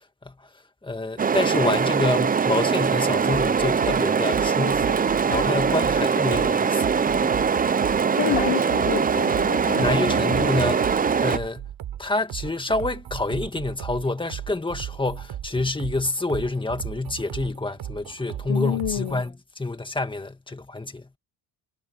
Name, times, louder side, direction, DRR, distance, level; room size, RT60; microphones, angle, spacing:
voice 1, 0.8-6.9 7.2-7.4 9.8-11.7 12.0-21.0, left 2 dB, 10° left, 1.9 m, -27 dB
sound 1, 1.2-11.4, right 6 dB, 20° right, 0.4 m, -22 dB
sound 2, 3.3-19.3, right 11 dB, 75° right, 4.3 m, -36 dB
voice 2, 8.2-10.3 18.5-19.2, left 14 dB, 65° left, 0.9 m, -29 dB
cardioid pair, 145°, 46 cm